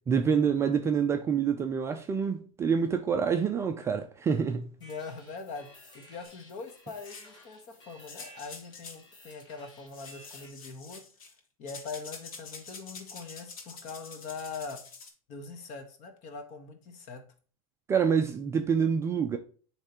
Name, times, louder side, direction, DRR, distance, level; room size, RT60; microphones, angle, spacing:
voice 1, 0.1-4.7 17.9-19.4, right 6 dB, 15° right, 0.3 m, -27 dB
voice 2, 4.8-11.0 11.6-14.8 15.3-17.2, left 4 dB, 40° left, 1.3 m, -42 dB
sound 1, 4.8-10.5, left 1 dB, 25° left, 1.4 m, -54 dB
sound 2, 6.2-6.3 7.0-7.4 8.1-9.0 9.9-11.4 11.7-15.1, left 4 dB, 85° left, 1.8 m, -46 dB
9.9 x 3.3 x 2.9 m
supercardioid pair, 145°, 18 cm